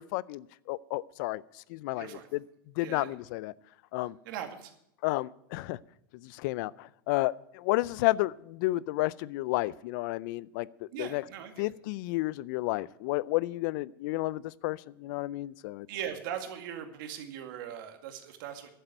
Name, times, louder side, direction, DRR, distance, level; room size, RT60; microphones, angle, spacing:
voice 1, 0.0-1.4 1.7-2.1 2.8-3.5 3.9-4.2 5.0-5.8 6.2-10.7 11.0-11.2 11.6-15.9, left 19 dB, 60° left, 22 dB, 0.5 m, -31 dB
voice 2, 1.9-2.3 2.8-3.1 4.2-4.7 10.9-11.7 15.9-18.7, right 9 dB, 65° right, 6 dB, 2.2 m, -40 dB
11.0 x 7.9 x 9.1 m, 0.75 s
hypercardioid pair, 115°, 12 cm